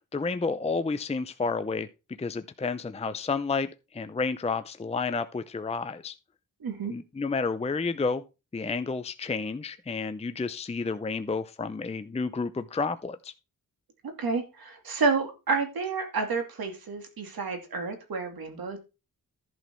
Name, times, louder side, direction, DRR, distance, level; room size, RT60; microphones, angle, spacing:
voice 1, 0.1-1.9 2.2-6.1 6.9-8.2 8.5-13.3, left 4 dB, 20° left, 0.5 m, -30 dB
voice 2, 6.6-6.9 14.0-18.8, right 4 dB, 90° right, 2.6 m, -30 dB
11.5 x 6.0 x 4.5 m
wide cardioid pair, 120°, 35 cm